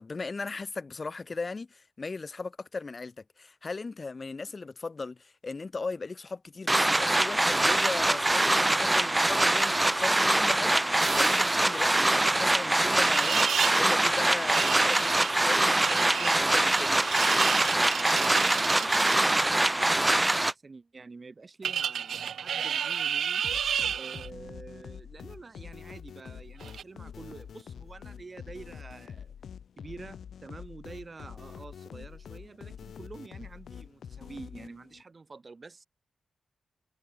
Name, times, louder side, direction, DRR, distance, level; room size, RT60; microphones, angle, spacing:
voice 1, 0.0-17.0, left 4 dB, 35° left, 4.7 m, -37 dB
sound 1, 6.7-20.5, right 1 dB, 15° right, 0.4 m, -24 dB
sound 2, 11.0-12.0 12.9-13.8 14.1-19.7 21.6-24.3 26.6-26.8, right 8 dB, 85° right, 0.5 m, -32 dB
voice 2, 18.1-23.4 23.9-29.3 29.8-35.9, right 4 dB, 35° right, 2.9 m, -47 dB
sound 3, 23.4-35.0, left 7 dB, 80° left, 0.9 m, -45 dB
wide cardioid pair, 100°, 0 cm